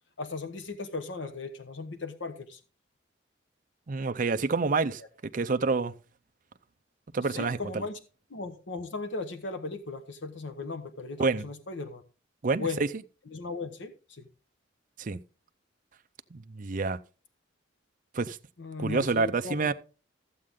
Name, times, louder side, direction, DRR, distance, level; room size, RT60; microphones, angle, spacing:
voice 1, 0.2-2.6 5.0-5.1 7.2-8.0 8.3-12.0 12.6-12.8 13.3-14.3 18.6-19.7, left 3 dB, 70° left, 1.1 m, -37 dB
voice 2, 3.9-5.0 5.3-5.9 7.1-7.6 11.2-11.4 12.4-12.7 15.0-15.2 16.3-17.0 18.1-18.4 18.8-19.7, right 4 dB, 45° right, 0.5 m, -27 dB
14.0 x 7.6 x 3.7 m
head